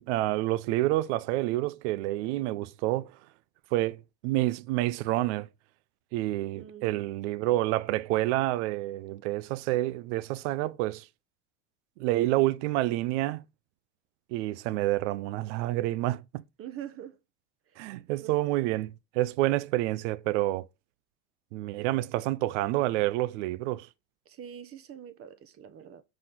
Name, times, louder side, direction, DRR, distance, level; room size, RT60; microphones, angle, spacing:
voice 1, 0.0-3.1 3.7-5.5 6.1-11.1 12.0-13.4 14.3-16.4 17.8-20.7 21.5-23.9, right 17 dB, 70° right, 0.6 m, -28 dB
voice 2, 6.6-7.0 16.6-17.2 18.1-18.3 24.3-26.0, right 9 dB, 35° right, 1.2 m, -44 dB
5.8 x 4.9 x 5.8 m
supercardioid pair, 105°, 37 cm